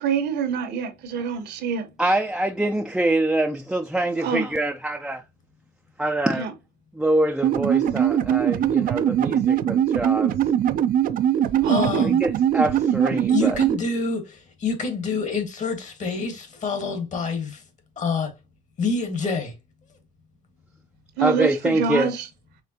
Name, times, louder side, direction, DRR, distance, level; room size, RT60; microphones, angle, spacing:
voice 1, 0.0-1.9 4.2-4.5 6.4-6.5 11.6-12.0 21.2-22.2, right 6 dB, 75° right, 1.2 m, -26 dB
voice 2, 2.0-5.2 6.0-6.5 6.9-10.3 12.0-13.6 21.2-22.1, right 1 dB, 5° right, 0.4 m, -24 dB
sound 1, 7.4-13.8, right 10 dB, 55° right, 0.5 m, -21 dB
voice 3, 11.6-12.2 13.3-17.6 18.0-18.3 18.8-19.5, left 4 dB, 45° left, 1.5 m, -27 dB
5.0 x 3.4 x 2.8 m
cardioid pair, 110°, 17 cm